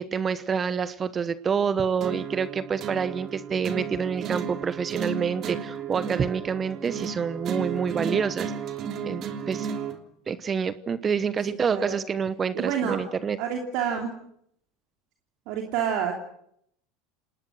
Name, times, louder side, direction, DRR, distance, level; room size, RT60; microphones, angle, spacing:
voice 1, 0.0-8.5 9.0-9.7 10.3-13.4, right 6 dB, 30° right, 15 dB, 1.0 m, -27 dB
sound 1, 2.0-10.0, right 7 dB, 45° right, 3.1 m, -33 dB
voice 2, 11.5-12.0 12.5-13.0 13.4-14.1 15.5-16.2, right 8 dB, 60° right, 2 dB, 3.0 m, -28 dB
28.0 x 19.0 x 6.4 m, 0.70 s
hypercardioid pair, 80°, 0 cm